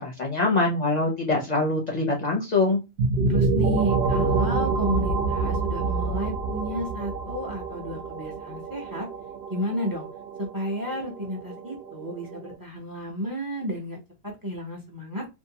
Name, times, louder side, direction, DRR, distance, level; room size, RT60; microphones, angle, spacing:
voice 1, 0.0-2.8, left 2 dB, 50° left, 0 dB, 0.6 m, -24 dB
sound 1, 3.0-12.5, right 4 dB, 70° right, 0.8 m, -27 dB
voice 2, 3.3-9.1 9.5-10.1 10.4-15.3, equal, 25° right, 0 dB, 0.5 m, -32 dB
2.6 x 2.1 x 2.7 m, 0.25 s
omnidirectional pair, 1.1 m